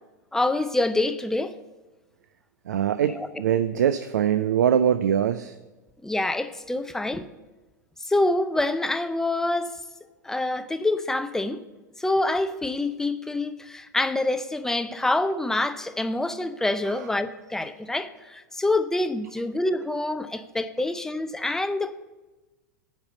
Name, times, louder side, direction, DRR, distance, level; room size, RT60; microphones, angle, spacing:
voice 1, 0.3-1.5 3.1-3.3 6.0-7.3 8.0-9.8 10.2-11.6 12.0-21.9, left 2 dB, 5° left, 0.5 m, -26 dB
voice 2, 2.7-5.5, right 9 dB, 65° right, 0.4 m, -23 dB
8.9 x 5.4 x 8.0 m
figure-of-eight pair, 90°, 10 cm